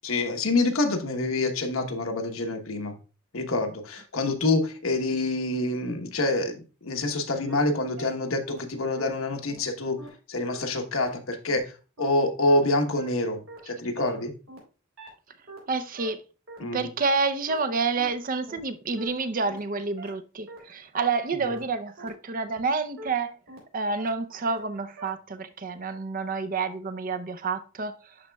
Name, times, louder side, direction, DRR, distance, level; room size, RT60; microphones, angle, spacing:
voice 1, 0.0-2.9 3.3-10.0 10.3-11.6 12.0-14.3 16.6-16.9, left 2 dB, 80° left, 1.1 m, -26 dB
sound 1, 7.5-7.6 8.0-8.1 8.5-8.6 9.0-9.1 9.5-9.6 10.0-10.1 10.5-10.6 11.0-11.1 11.5-11.6 12.0-12.1 12.5-12.6 13.0-13.1 13.5-13.6 14.0-14.1 14.5-14.6 15.0-15.1 15.5-15.6 16.0-16.1 16.5-16.6 17.0-17.1 17.5-17.6 18.0-18.1 18.5-18.6 19.0-19.1 19.5-19.6 20.0-20.1 20.5-20.6 21.0-21.1 21.5-21.6 22.0-22.1 22.5-22.6 23.0-23.1 23.5-23.6 24.0-24.1 24.5-24.6 25.0-25.1, right 2 dB, 70° right, 3.5 m, -42 dB
voice 2, 15.7-16.2 16.7-23.4 23.7-28.0, right 4 dB, 40° right, 0.6 m, -29 dB
11.5 x 4.3 x 2.3 m
head